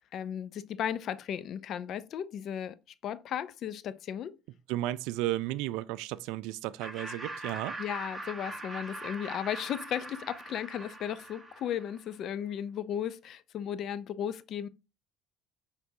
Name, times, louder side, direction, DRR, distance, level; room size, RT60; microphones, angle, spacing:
voice 1, 0.1-2.8 3.0-4.4 7.8-14.7, left 9 dB, 55° left, 0.4 m, -35 dB
voice 2, 4.7-7.7, right 15 dB, 80° right, 0.3 m, -33 dB
Laughter, 6.8-12.1, right 2 dB, 10° right, 1.5 m, -42 dB
5.9 x 3.3 x 2.7 m
supercardioid pair, 90°, 0 cm